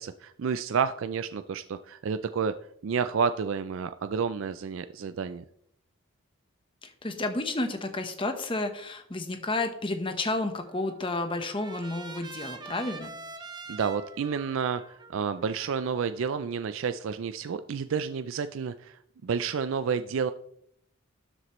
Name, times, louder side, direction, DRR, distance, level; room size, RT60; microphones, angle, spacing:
voice 1, 0.0-2.5 2.8-5.4 13.7-14.8 15.1-20.3, right 6 dB, 70° right, 11 dB, 0.4 m, -30 dB
voice 2, 6.8-13.1, left 2 dB, 25° left, 7 dB, 1.0 m, -31 dB
Trumpet, 10.6-16.8, right 4 dB, 20° right, 0.8 m, -45 dB
12.5 x 7.9 x 3.1 m, 0.71 s
head